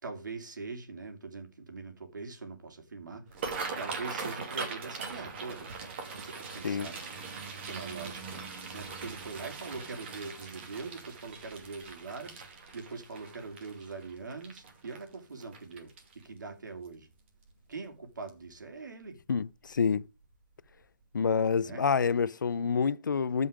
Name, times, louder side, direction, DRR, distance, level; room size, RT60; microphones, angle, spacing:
voice 1, 0.0-3.4 3.8-5.7 6.1-7.0 7.7-8.4 8.7-17.1 17.7-19.2 21.6-21.8, right 4 dB, 70° right, 2.9 m, -42 dB
sound 1, 3.3-16.4 16.9-17.1 17.5-17.9 18.3-18.4 19.7-19.9 20.2-20.3 20.8-20.9, right 4 dB, 35° right, 2.4 m, -41 dB
voice 2, 19.3-20.0 21.1-23.5, left 5 dB, 80° left, 0.6 m, -27 dB
14.0 x 5.5 x 5.0 m
hypercardioid pair, 160°, 10 cm